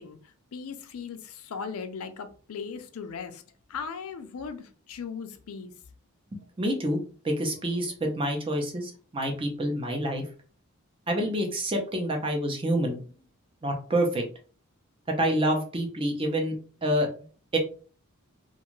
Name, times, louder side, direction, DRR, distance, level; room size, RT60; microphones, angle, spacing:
voice 1, 0.0-3.4 3.7-5.7, left 5 dB, 80° left, 0.4 m, -38 dB
voice 2, 6.3-7.0 7.2-10.2 11.1-13.0 13.6-14.2 15.1-16.5 16.8-17.1 17.5-17.6, right 1 dB, 25° right, 0.6 m, -27 dB
2.5 x 2.3 x 3.0 m
head